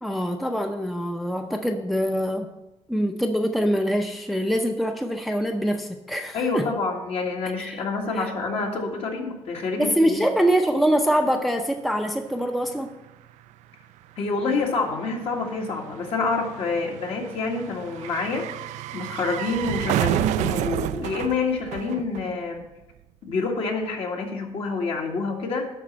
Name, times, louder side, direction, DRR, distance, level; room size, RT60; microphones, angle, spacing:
voice 1, 0.0-2.5 2.9-6.7 7.6-7.8 8.2-8.3 9.8-12.9, equal, ahead, 4 dB, 0.6 m, -24 dB
voice 2, 6.3-10.3 14.2-18.5 18.9-22.7 23.2-25.7, left 3 dB, 55° left, 1 dB, 1.8 m, -27 dB
sound 1, 12.0-12.1 12.2-22.7 22.9-23.0, right 13 dB, 85° right, 0.4 m, -31 dB
11.5 x 4.2 x 7.0 m, 0.95 s
cardioid pair, 130°, 12 cm